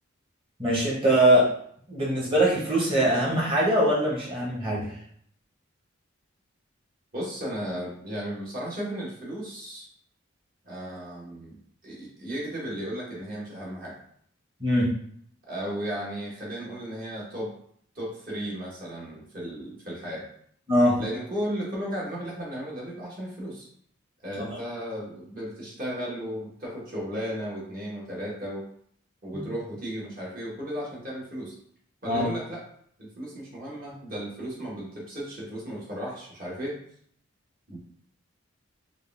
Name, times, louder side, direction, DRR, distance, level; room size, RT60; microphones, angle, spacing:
voice 1, 0.6-1.5 1.9-4.9 14.6-14.9 20.7-21.0 24.4-24.5 29.3-29.4 32.1-32.2, right 1 dB, 25° right, -5 dB, 1.4 m, -22 dB
voice 2, 7.1-9.9 10.6-11.6 11.8-14.0 15.5-17.5 17.9-20.2 21.0-23.7 24.2-28.6 29.2-31.5 32.0-32.6 33.0-36.7 37.7-37.8, equal, 45° right, -5 dB, 1.6 m, -35 dB
4.8 x 2.5 x 3.5 m, 0.64 s
head